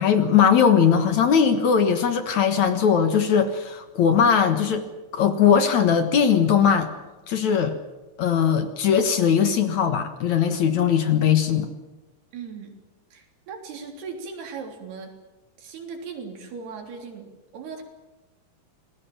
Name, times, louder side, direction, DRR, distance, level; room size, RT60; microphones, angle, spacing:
voice 1, 0.0-4.8 5.1-6.9 7.3-7.8 8.2-11.7, left 7 dB, 60° left, 8 dB, 2.4 m, -20 dB
voice 2, 12.3-12.8 13.1-15.1 15.6-17.8, right 5 dB, 85° right, 3 dB, 5.5 m, -38 dB
27.5 x 20.0 x 7.3 m, 1.1 s
omnidirectional pair, 4.5 m